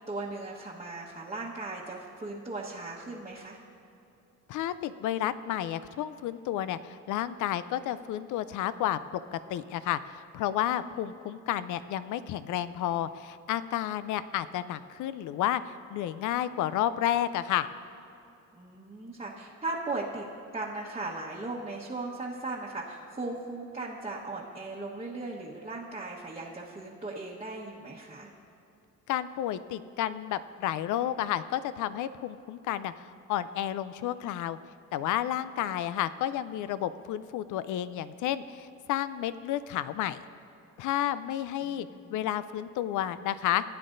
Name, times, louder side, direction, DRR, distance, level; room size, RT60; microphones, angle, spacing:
voice 1, 0.1-3.6 10.9-11.0 18.5-20.3 20.5-28.3 35.6-35.7 41.6-42.2, right 2 dB, 20° right, -7 dB, 1.2 m, -38 dB
voice 2, 4.5-9.0 9.3-17.7 29.1-34.6 34.9-40.2 40.8-43.6, left 12 dB, 80° left, 14 dB, 0.5 m, -31 dB
17.0 x 9.4 x 2.6 m, 2.8 s
cardioid pair, 90°, 30 cm